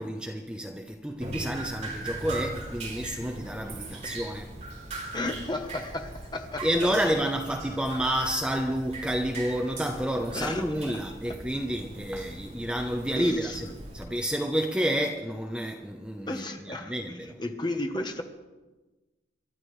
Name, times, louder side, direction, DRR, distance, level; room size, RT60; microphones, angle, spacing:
voice 1, 0.0-4.5 6.6-17.4, equal, 5° right, 0.8 m, -30 dB
Drip, 1.2-14.0, right 2 dB, 40° right, 4.0 m, -40 dB
voice 2, 5.1-6.6 10.3-10.6 13.2-13.6 16.3-18.2, left 2 dB, 25° left, 1.1 m, -33 dB
27.5 x 12.5 x 3.3 m
head